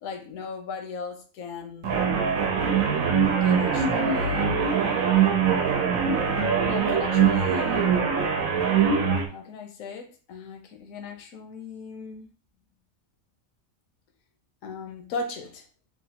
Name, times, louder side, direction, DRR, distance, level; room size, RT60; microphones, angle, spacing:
voice 1, 0.0-2.0 3.4-4.7 6.6-8.2 9.3-12.3 14.6-15.7, left 4 dB, 80° left, 1.0 m, -37 dB
sound 1, 1.8-9.3, right 6 dB, 90° right, 1.1 m, -22 dB
3.1 x 2.3 x 2.8 m
omnidirectional pair, 1.4 m